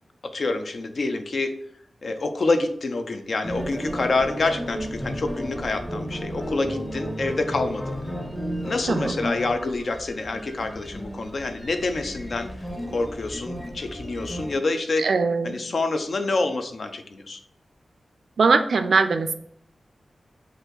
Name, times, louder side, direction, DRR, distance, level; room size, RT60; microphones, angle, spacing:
voice 1, 0.3-1.5 2.0-7.9 8.6-12.5 12.9-15.1 15.4-17.4, left 3 dB, 55° left, 7 dB, 0.5 m, -27 dB
sound 1, 3.4-14.6, equal, 5° left, 0.7 m, -33 dB
voice 2, 8.9-9.2 15.0-15.6 18.4-19.3, right 4 dB, 70° right, 9 dB, 0.4 m, -21 dB
5.3 x 2.6 x 3.8 m, 0.68 s
wide cardioid pair, 155°, 0 cm